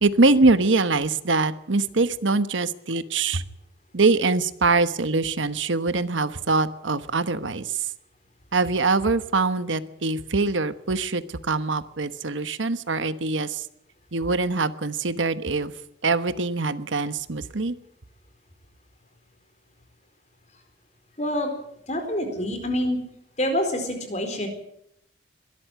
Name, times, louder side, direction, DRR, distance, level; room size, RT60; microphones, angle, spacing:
voice 1, 0.0-3.4 3.9-7.9 8.5-13.7 14.1-15.7 16.0-17.8, right 3 dB, 80° right, 13 dB, 1.1 m, -23 dB
voice 2, 21.2-21.5 21.9-23.0 23.4-24.5, left 1 dB, 35° left, 7 dB, 4.3 m, -26 dB
22.5 x 13.0 x 9.2 m, 0.76 s
head